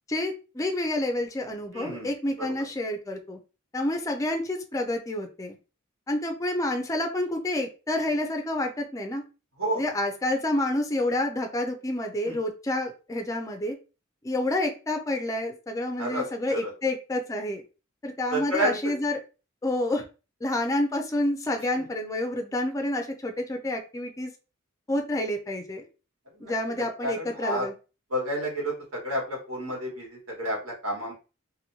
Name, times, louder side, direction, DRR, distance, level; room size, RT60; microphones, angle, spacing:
voice 1, 0.1-3.4 3.7-5.6 6.1-9.2 9.8-13.7 14.2-17.6 18.0-19.2 19.6-20.0 20.4-24.3 24.9-25.9 26.4-27.7, left 1 dB, 15° left, 4 dB, 0.4 m, -29 dB
voice 2, 1.7-2.1 2.4-2.5 9.6-9.8 12.3-12.4 16.0-16.2 16.5-16.7 18.3-18.8 21.7-21.8 26.4-26.5 26.8-27.7 28.1-31.1, equal, 80° right, -2 dB, 1.6 m, -30 dB
2.9 x 2.6 x 2.7 m, 0.32 s
head